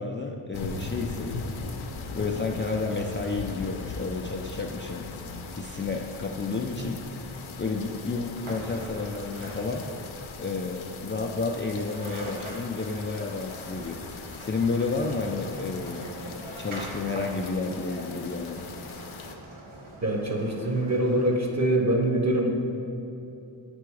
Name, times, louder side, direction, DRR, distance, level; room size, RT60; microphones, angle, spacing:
voice 1, 0.0-1.6 2.1-5.1 5.5-7.0 7.5-9.9 10.4-14.0 14.4-16.1 16.6-18.6, left 3 dB, 25° left, 0 dB, 0.4 m, -31 dB
sound 1, 0.5-19.4, left 4 dB, 75° left, 0.6 m, -39 dB
sound 2, 8.4-10.2 11.6-11.7 11.9-21.4, right 1 dB, 80° right, 1.2 m, -43 dB
voice 2, 20.0-22.5, right 1 dB, 35° right, 1 dB, 1.0 m, -24 dB
7.6 x 3.4 x 4.7 m, 2.8 s
cardioid pair, 45°, 48 cm